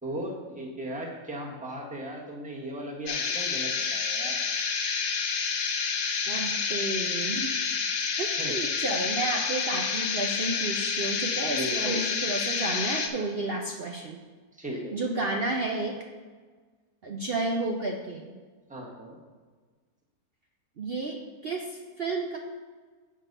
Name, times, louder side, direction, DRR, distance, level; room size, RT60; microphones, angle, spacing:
voice 1, 0.0-4.4 8.4-8.5 11.5-12.1 14.6-15.1 18.7-19.2, right 1 dB, 5° right, -2 dB, 1.2 m, -37 dB
sound 1, 3.1-13.1, left 5 dB, 60° left, 1.1 m, -29 dB
voice 2, 6.3-7.5 8.2-14.2 14.9-16.0 17.0-18.3 20.8-22.4, right 2 dB, 65° right, 1 dB, 0.5 m, -31 dB
7.5 x 5.5 x 5.4 m, 1.4 s
omnidirectional pair, 1.8 m